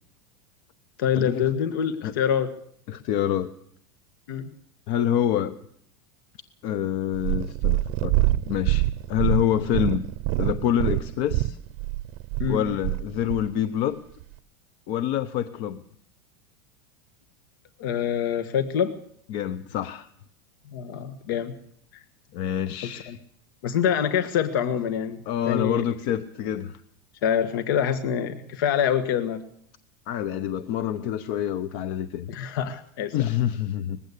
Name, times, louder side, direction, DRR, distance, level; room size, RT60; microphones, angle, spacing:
voice 1, 1.0-2.5 4.3-4.5 12.4-12.6 17.8-19.0 20.7-21.5 21.9-22.0 22.8-23.2 23.6-25.2 25.4-25.8 27.2-29.4 32.3-33.3, left 8 dB, 70° left, 10 dB, 1.5 m, -25 dB
voice 2, 2.9-3.5 4.9-5.6 6.6-10.1 10.4-11.6 12.5-14.0 14.9-15.8 19.3-20.1 22.3-23.2 25.3-26.8 30.1-32.3 33.1-34.0, left 10 dB, 45° left, 12 dB, 0.8 m, -27 dB
Purr, 7.1-13.5 14.2-14.3, right 18 dB, 50° right, 0.8 m, -25 dB
20.5 x 15.5 x 8.4 m, 0.66 s
supercardioid pair, 165°, 12 cm